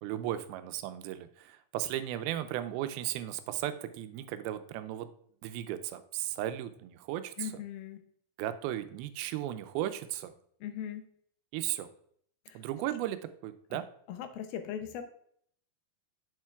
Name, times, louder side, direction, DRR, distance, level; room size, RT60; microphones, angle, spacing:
voice 1, 0.0-5.1 5.4-7.5 8.4-10.3 11.5-11.9 12.5-13.9, right 12 dB, 85° right, 10 dB, 2.4 m, -36 dB
voice 2, 7.4-8.0 10.6-11.0 12.5-12.6 14.1-15.0, left 9 dB, 85° left, 8 dB, 2.6 m, -39 dB
8.2 x 7.4 x 2.3 m, 0.63 s
omnidirectional pair, 4.3 m